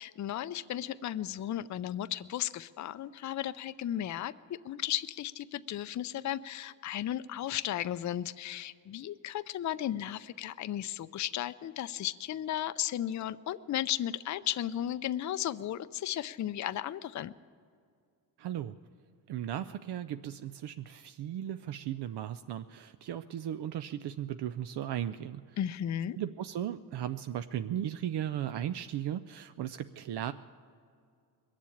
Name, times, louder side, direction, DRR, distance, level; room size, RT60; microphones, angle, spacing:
voice 1, 0.0-4.3 4.6-17.3 25.6-26.2, left 11 dB, 50° left, 14 dB, 0.4 m, -35 dB
voice 2, 18.4-18.8 19.3-25.6 26.1-30.3, right 11 dB, 80° right, 10 dB, 0.5 m, -36 dB
21.5 x 7.5 x 8.5 m, 2.3 s
cardioid pair, 90°, 40 cm